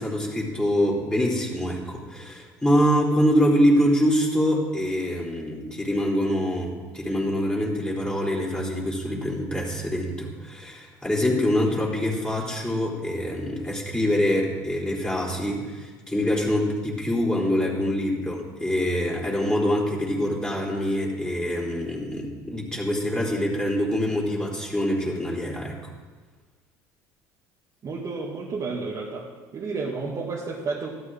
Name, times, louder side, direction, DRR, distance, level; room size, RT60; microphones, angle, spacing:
voice 1, 0.0-25.7, equal, 10° left, -4 dB, 3.9 m, -25 dB
voice 2, 27.8-29.3 29.5-30.9, right 4 dB, 40° right, -4 dB, 2.2 m, -31 dB
14.0 x 13.0 x 3.8 m, 1.4 s
supercardioid pair, 80°, 9 cm